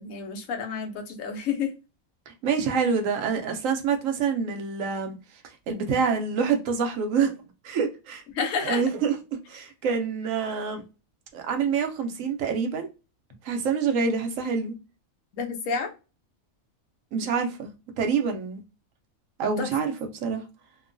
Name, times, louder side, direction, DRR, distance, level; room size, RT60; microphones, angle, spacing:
voice 1, 0.0-1.7 8.3-8.8 15.3-15.9 19.6-19.7, left 5 dB, 75° left, 1.1 m, -29 dB
voice 2, 2.3-5.1 5.7-7.4 7.6-8.2 8.6-9.2 9.5-10.8 11.3-12.9 13.4-14.7 17.1-18.6 19.4-20.4, right 6 dB, 75° right, 1.0 m, -26 dB
3.0 x 2.1 x 2.4 m
omnidirectional pair, 1.4 m